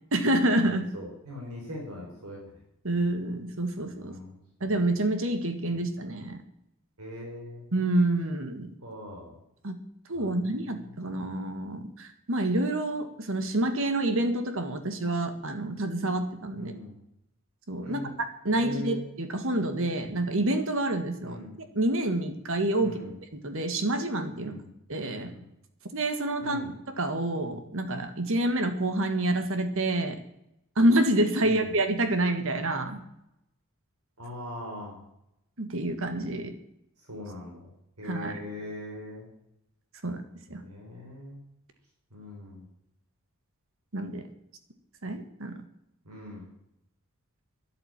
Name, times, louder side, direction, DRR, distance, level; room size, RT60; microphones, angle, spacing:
voice 1, 0.1-0.9 2.8-4.2 4.6-6.4 7.7-8.7 9.6-9.8 10.1-16.7 17.7-18.0 18.4-21.4 21.7-23.0 23.3-24.5 24.9-25.3 25.9-26.6 27.0-30.2 30.8-33.0 35.6-36.5 38.0-38.4 40.0-40.2 40.5-40.6 43.9-44.2 45.0-45.6, right 1 dB, 60° right, 8 dB, 1.7 m, -27 dB
voice 2, 0.6-2.4 4.0-4.4 4.6-4.7 7.0-7.6 8.8-9.3 10.1-10.5 11.0-11.2 16.5-16.9 17.8-18.1 18.5-19.0 21.2-21.6 22.8-23.1 24.3-24.6 25.2-25.4 26.4-26.7 31.4-31.7 34.2-35.0 37.1-37.7 38.0-39.3 40.0-40.2 40.5-41.4 42.1-42.6 46.0-46.5, left 1 dB, 80° right, -1 dB, 4.5 m, -41 dB
12.0 x 10.5 x 8.9 m, 0.80 s
head